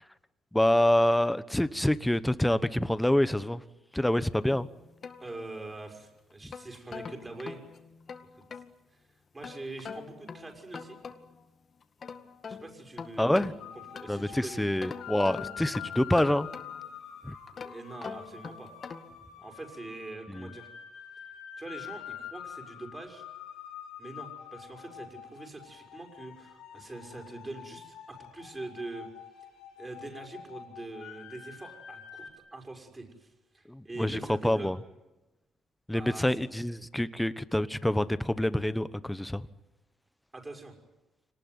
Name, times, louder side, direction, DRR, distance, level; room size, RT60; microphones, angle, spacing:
voice 1, 0.5-3.6 3.9-4.7 6.4-6.5 13.2-13.5 14.1-16.5 17.2-17.3 20.3-20.5 33.7-34.8 35.9-39.5, left 1 dB, 5° left, 1.1 m, -26 dB
sound 1, 4.5-5.9 6.3-8.7 9.4-11.5 11.8-14.3 14.8-17.0 17.5-19.2, left 5 dB, 45° left, 2.2 m, -44 dB
voice 2, 5.2-7.6 8.3-8.6 8.9-9.1 9.3-11.0 12.5-13.6 13.9-14.6 17.5-18.7 19.4-20.7 21.6-23.2 24.0-29.1 29.8-34.7 35.9-36.4 40.3-40.7, right 2 dB, 20° right, 6.0 m, -43 dB
sound 2, 13.6-32.3, left 9 dB, 85° left, 6.0 m, -46 dB
26.5 x 19.5 x 9.6 m
cardioid pair, 90°, 0 cm